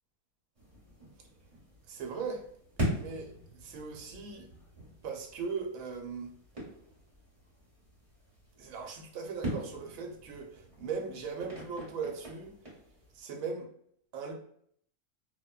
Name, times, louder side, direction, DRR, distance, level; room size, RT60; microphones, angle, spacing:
sound 1, 0.6-13.2, right 1 dB, 25° right, 1.0 m, -42 dB
voice 1, 1.9-2.4 2.9-4.5 5.0-6.3 8.6-12.6 13.1-13.7 14.1-14.3, right 5 dB, 75° right, 2 dB, 1.0 m, -39 dB
2.6 x 2.1 x 2.2 m, 0.66 s
omnidirectional pair, 1.5 m